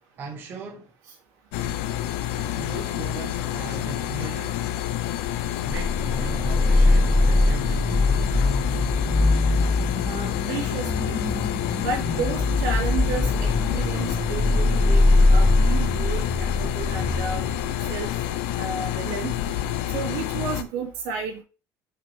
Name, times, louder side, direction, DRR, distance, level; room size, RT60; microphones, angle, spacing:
voice 1, 0.2-0.9 2.3-4.6 5.6-8.9 15.3-15.4 19.8-19.9, right 4 dB, 30° right, 1.1 m, -39 dB
sound 1, 1.5-20.6, left 12 dB, 80° left, 0.7 m, -28 dB
sound 2, 5.7-18.3, left 2 dB, 5° left, 0.3 m, -22 dB
voice 2, 10.0-11.1 11.8-15.0 15.3-17.5 17.9-18.1 18.6-19.3 19.9-21.4, right 5 dB, 75° right, 2.8 m, -32 dB
5.8 x 5.4 x 3.4 m
cardioid pair, 175°, 7 cm